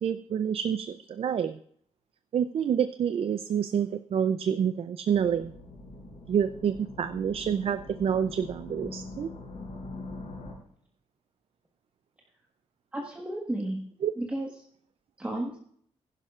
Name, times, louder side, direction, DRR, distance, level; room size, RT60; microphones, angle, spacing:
voice 1, 0.0-1.6 2.3-5.5 6.3-9.3 14.0-14.1, right 8 dB, 55° right, 11 dB, 0.4 m, -28 dB
sound 1, 5.1-10.5, left 2 dB, 75° left, 5.8 m, -43 dB
voice 2, 12.9-13.8 14.2-14.5 15.2-15.6, right 1 dB, 10° right, -1 dB, 1.4 m, -32 dB
16.5 x 11.0 x 2.4 m, 0.63 s
wide cardioid pair, 140°, 12 cm